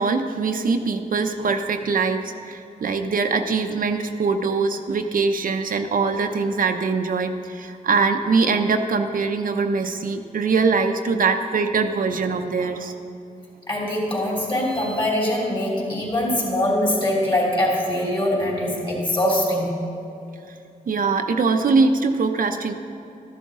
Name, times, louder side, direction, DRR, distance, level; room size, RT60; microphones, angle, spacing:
voice 1, 0.0-12.9 20.9-22.7, right 4 dB, 70° right, 5 dB, 0.6 m, -22 dB
voice 2, 13.7-19.8, left 1 dB, 35° left, -3 dB, 3.3 m, -23 dB
13.5 x 11.0 x 3.7 m, 2.7 s
wide cardioid pair, 115°, 15 cm